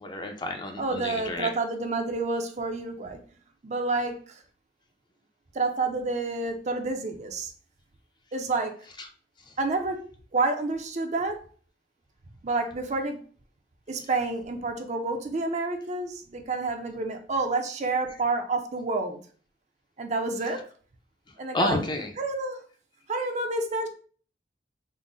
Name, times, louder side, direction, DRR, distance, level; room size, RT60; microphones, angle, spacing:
voice 1, 0.0-1.5 21.5-22.1, left 2 dB, 25° left, 4 dB, 0.5 m, -30 dB
voice 2, 0.8-3.2 3.6-4.2 5.5-7.5 8.3-8.7 9.6-10.0 10.3-11.4 12.4-13.2 13.9-19.2 20.0-20.6 21.4-21.8 22.2-22.6 23.1-23.9, right 3 dB, 40° right, 5 dB, 0.5 m, -29 dB
3.7 x 2.0 x 3.8 m, 0.43 s
head